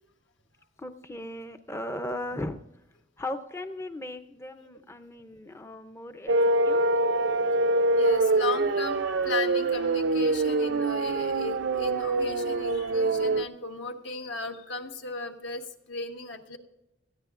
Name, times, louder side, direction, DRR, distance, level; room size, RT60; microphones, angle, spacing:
voice 1, 0.8-2.6 3.2-6.9, left 1 dB, 15° left, 9 dB, 0.5 m, -37 dB
sound 1, 6.3-13.4, right 2 dB, 70° right, 0.5 m, -25 dB
voice 2, 8.0-16.6, left 3 dB, 70° left, 4 dB, 1.3 m, -36 dB
19.0 x 13.5 x 2.5 m, 0.92 s
head